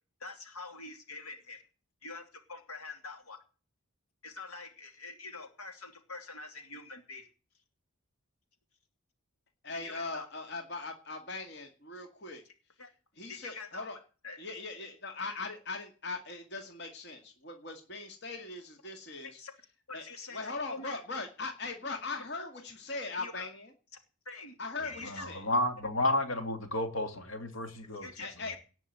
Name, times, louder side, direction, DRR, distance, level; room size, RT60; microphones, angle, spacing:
voice 1, 0.2-1.6 2.0-3.4 4.2-7.3 9.7-10.3 12.8-12.9 13.3-13.9 14.2-14.4 19.4-19.5 19.9-20.9 23.1-23.5 24.2-24.6 24.8-25.2 27.9-28.6, left 3 dB, 90° left, 2.9 m, -45 dB
voice 2, 9.6-12.4 13.2-14.0 14.4-19.4 19.9-20.0 20.3-23.7 24.6-25.4 28.2-28.5, left 3 dB, 50° left, 2.1 m, -40 dB
voice 3, 25.0-28.1, left 1 dB, 65° left, 2.8 m, -31 dB
18.0 x 6.2 x 8.1 m
head